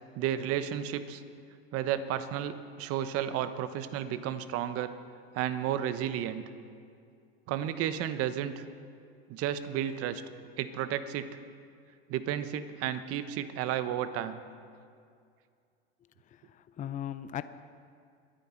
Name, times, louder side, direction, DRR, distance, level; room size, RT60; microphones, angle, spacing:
voice 1, 0.2-1.2 1.7-4.9 5.3-6.4 7.5-8.5 9.3-10.2 10.6-11.3 12.1-14.4, right 10 dB, 50° right, 12 dB, 1.1 m, -32 dB
voice 2, 16.5-17.4, left 11 dB, 25° left, 13 dB, 0.6 m, -37 dB
22.5 x 9.5 x 4.5 m, 2.3 s
hypercardioid pair, 95°, 31 cm